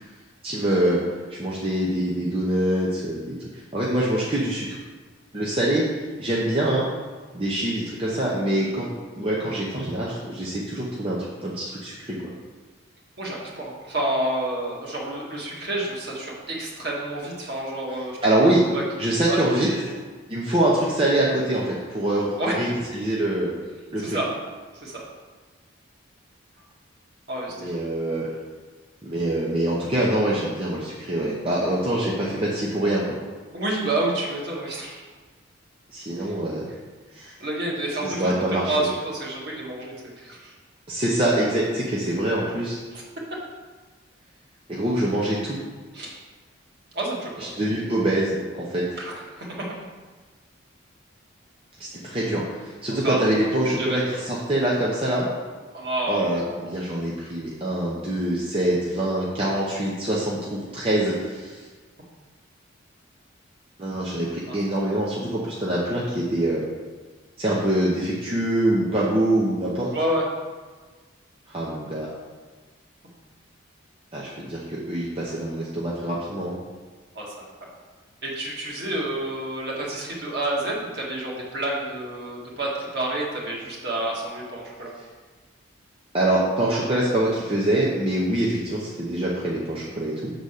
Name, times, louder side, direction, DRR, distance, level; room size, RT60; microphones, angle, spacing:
voice 1, 0.4-1.0 1.3-3.4 3.7-4.8 5.3-5.8 6.2-6.8 7.3-8.9 9.2-12.2 18.2-18.6 19.0-19.7 20.3-23.5 23.9-24.2 27.5-28.3 29.0-33.2 35.9-36.6 37.1-37.3 38.0-38.7 40.9-42.8 44.7-45.6 47.4-48.4 48.7-48.8 51.8-55.3 56.1-61.7 63.8-66.6 67.4-69.9 71.5-72.1 74.1-76.6 86.1-90.3, right 1 dB, 25° right, -5 dB, 0.9 m, -24 dB
voice 2, 13.2-18.2 18.7-18.8 19.3-20.0 22.4-22.7 24.0-24.3 24.8-25.0 27.3-27.8 33.5-35.1 36.2-36.3 37.4-40.5 42.9-43.0 45.9-46.2 46.9-47.3 49.0-49.7 53.0-54.0 55.7-56.7 64.5-64.6 64.8-65.0 69.9-70.2 77.2-77.5 78.2-84.9, right 1 dB, 55° right, -4 dB, 1.9 m, -29 dB
6.9 x 4.0 x 6.5 m, 1.4 s
head